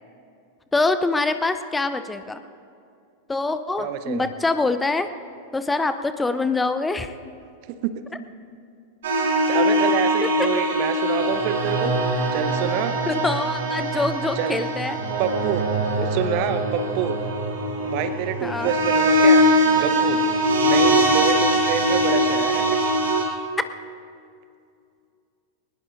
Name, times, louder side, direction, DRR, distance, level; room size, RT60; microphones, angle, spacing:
voice 1, 0.7-2.4 3.3-5.1 5.5-7.1 10.2-10.5 13.1-15.0 18.4-18.7, left 3 dB, 10° left, 11 dB, 0.5 m, -24 dB
voice 2, 3.8-4.3 7.7-7.9 9.1-12.0 12.3-13.0 14.4-14.6 15.2-17.2 17.8-19.4 19.7-20.2 20.6-22.7, right 8 dB, 45° right, 11 dB, 0.8 m, -27 dB
sound 1, 9.0-23.2, equal, 60° right, 3.4 m, -22 dB
21.0 x 20.0 x 2.5 m, 2.4 s
figure-of-eight pair, 90°, 0 cm